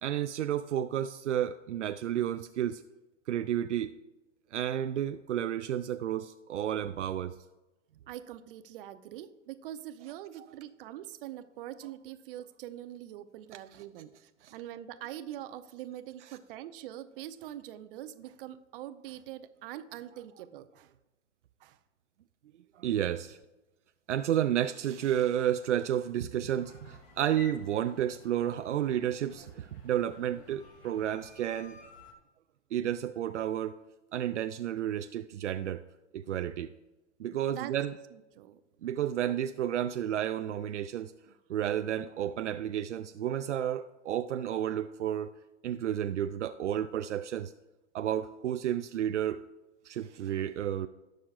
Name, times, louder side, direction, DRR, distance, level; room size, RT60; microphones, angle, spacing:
voice 1, 0.0-2.8 3.3-3.9 4.5-7.4 14.4-14.5 22.8-23.4 24.1-31.8 32.7-33.8 34.1-35.8 36.1-36.7 37.2-37.9 38.8-41.1 41.5-45.3 45.6-47.5 47.9-49.4 49.8-50.9, right 10 dB, 75° right, 9 dB, 0.5 m, -31 dB
voice 2, 8.1-20.9 21.6-21.8 37.3-37.7 38.1-38.6 41.3-41.4, right 12 dB, 50° right, 10 dB, 0.9 m, -44 dB
sound 1, 26.6-32.1, left 3 dB, 55° left, 2.2 m, -53 dB
18.5 x 6.5 x 2.5 m, 1.0 s
hypercardioid pair, 115°, 36 cm